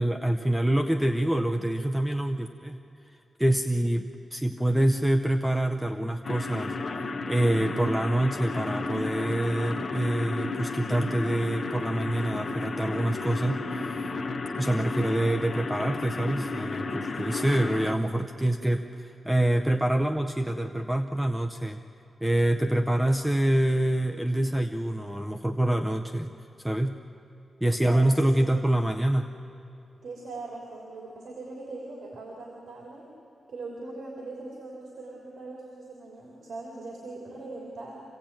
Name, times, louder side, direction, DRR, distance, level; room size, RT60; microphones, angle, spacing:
voice 1, 0.0-2.8 3.4-6.7 7.3-14.1 14.6-21.8 22.2-26.3 26.6-26.9 27.6-29.3, right 1 dB, 5° right, 4 dB, 0.6 m, -26 dB
sound 1, 6.2-17.9, left 3 dB, 40° left, 1.0 m, -33 dB
voice 2, 27.8-28.5 30.0-33.0 33.5-38.0, right 3 dB, 70° right, -2 dB, 3.3 m, -40 dB
26.0 x 17.0 x 8.9 m, 2.7 s
wide cardioid pair, 175°, 0 cm